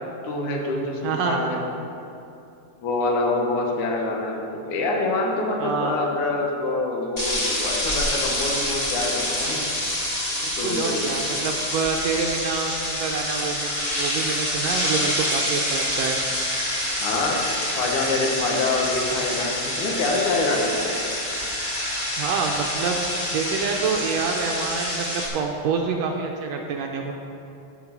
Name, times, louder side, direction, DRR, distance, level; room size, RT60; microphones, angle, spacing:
voice 1, 0.2-1.6 2.8-9.6 10.6-11.1 17.0-17.4 17.8-21.0, left 2 dB, 85° left, 0 dB, 2.6 m, -25 dB
voice 2, 1.0-1.5 5.6-6.0 10.4-16.2 22.2-23.0 23.3-27.1, right 5 dB, 75° right, 2 dB, 1.6 m, -27 dB
sound 1, 7.2-25.3, left 1 dB, 25° left, 0.8 m, -27 dB
13.5 x 4.8 x 5.9 m, 2.7 s
omnidirectional pair, 3.4 m